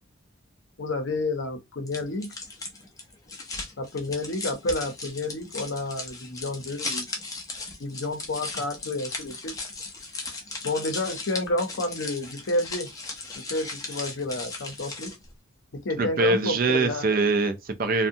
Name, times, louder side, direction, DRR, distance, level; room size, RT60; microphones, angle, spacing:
voice 1, 0.8-2.3 3.8-7.1 7.8-9.5 10.6-12.9 13.3-15.1 15.7-17.1, left 2 dB, 60° left, 0.6 m, -30 dB
sound 1, 1.9-15.3, left 3 dB, 15° left, 0.4 m, -37 dB
voice 2, 16.0-18.1, right 3 dB, 40° right, 0.4 m, -23 dB
2.6 x 2.2 x 2.6 m
head